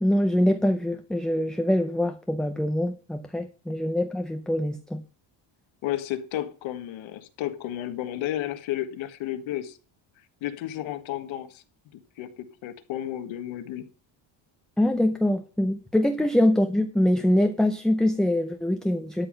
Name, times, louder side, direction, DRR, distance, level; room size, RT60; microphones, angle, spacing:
voice 1, 0.0-5.0 14.8-19.3, left 1 dB, ahead, 0.4 m, -24 dB
voice 2, 5.8-9.8 10.4-11.6 11.9-13.9, left 12 dB, 85° left, 1.7 m, -32 dB
12.5 x 5.7 x 6.7 m
cardioid pair, 175°, 46 cm